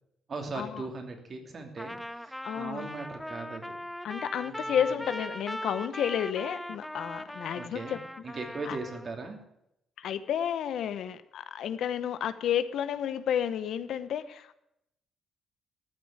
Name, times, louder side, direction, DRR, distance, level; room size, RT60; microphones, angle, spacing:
voice 1, 0.3-3.7 4.4-4.9 7.5-9.4, right 3 dB, 45° right, 4 dB, 2.8 m, -39 dB
Trumpet, 1.8-9.1, equal, 5° left, 0.6 m, -40 dB
voice 2, 2.4-2.9 4.0-8.0 8.7-8.8 10.0-14.5, left 9 dB, 75° left, 13 dB, 0.8 m, -31 dB
13.5 x 6.3 x 9.6 m, 0.81 s
cardioid pair, 90°, 0 cm